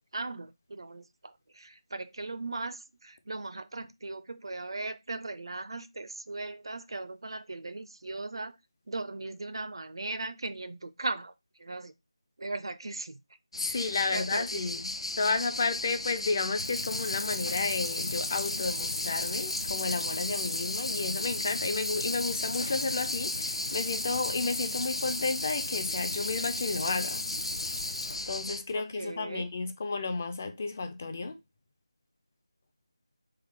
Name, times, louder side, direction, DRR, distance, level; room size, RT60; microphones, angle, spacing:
voice 1, 0.1-1.0 1.5-8.6 8.9-11.3 11.6-11.9 12.4-13.2 13.6-13.8 14.1-14.6 28.7-29.5, right 2 dB, 55° right, 0.5 m, -38 dB
sound 1, 13.5-28.6, left 2 dB, 85° left, 0.6 m, -36 dB
voice 2, 13.6-27.2 28.3-31.4, left 3 dB, 25° left, 0.4 m, -32 dB
sound 2, 16.3-28.7, left 2 dB, 65° left, 0.9 m, -36 dB
3.4 x 3.3 x 3.6 m
figure-of-eight pair, 170°, 3 cm